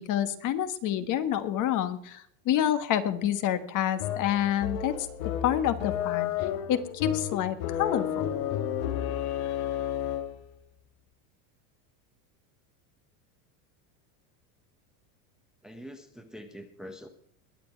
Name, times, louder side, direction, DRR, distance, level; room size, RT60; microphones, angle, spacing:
voice 1, 0.0-5.1 5.4-8.3, left 11 dB, 40° left, 11 dB, 1.3 m, -28 dB
sound 1, 4.0-10.5, left 10 dB, 60° left, 1.6 m, -32 dB
voice 2, 15.6-17.1, equal, ahead, 7 dB, 1.0 m, -44 dB
22.0 x 7.8 x 4.4 m, 0.67 s
supercardioid pair, 150°, 47 cm